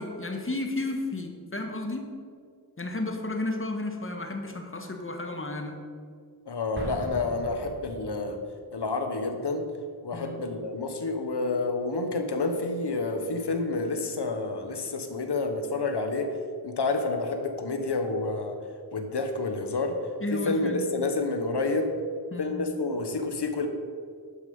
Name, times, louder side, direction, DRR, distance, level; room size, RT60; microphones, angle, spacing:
voice 1, 0.0-2.1 2.8-5.8 10.1-10.4 20.2-20.8 22.3-22.6, left 2 dB, 30° left, 4 dB, 1.5 m, -32 dB
voice 2, 6.5-8.4 8.7-9.6 10.0-16.3 16.6-18.6 18.9-19.9 20.3-21.9 22.4-23.7, left 3 dB, 80° left, 6 dB, 1.2 m, -29 dB
Explosion, 6.7-8.4, right 1 dB, 30° right, 2.2 m, -38 dB
11.5 x 7.0 x 5.4 m, 2.2 s
wide cardioid pair, 70°, 40 cm